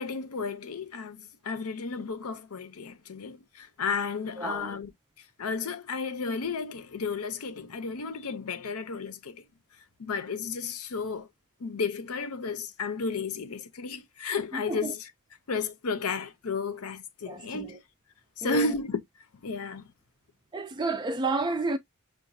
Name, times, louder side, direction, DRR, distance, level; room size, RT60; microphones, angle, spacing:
voice 1, 0.0-4.9 5.2-9.4 10.0-11.3 11.6-15.0 15.5-17.8 18.4-19.0 19.3-19.9, left 4 dB, 85° left, 0.7 m, -33 dB
voice 2, 4.4-4.8 14.5-14.9 17.3-17.8 18.4-18.7 20.5-21.8, right 3 dB, 20° right, 0.3 m, -31 dB
5.8 x 2.3 x 2.6 m
head